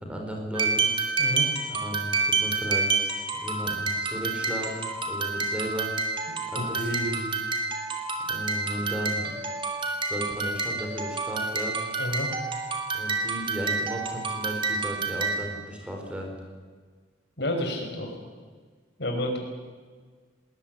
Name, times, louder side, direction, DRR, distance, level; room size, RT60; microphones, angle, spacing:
voice 1, 0.0-0.9 1.7-5.9 6.5-7.0 8.3-9.4 10.0-11.9 12.9-16.4, equal, 5° right, 1 dB, 4.4 m, -35 dB
sound 1, 0.5-15.6, right 3 dB, 25° right, 2.7 m, -29 dB
voice 2, 1.2-1.5 6.6-7.3 12.0-12.3 17.4-18.2 19.0-19.4, equal, 60° left, 2 dB, 5.1 m, -30 dB
20.0 x 19.5 x 9.3 m, 1.5 s
head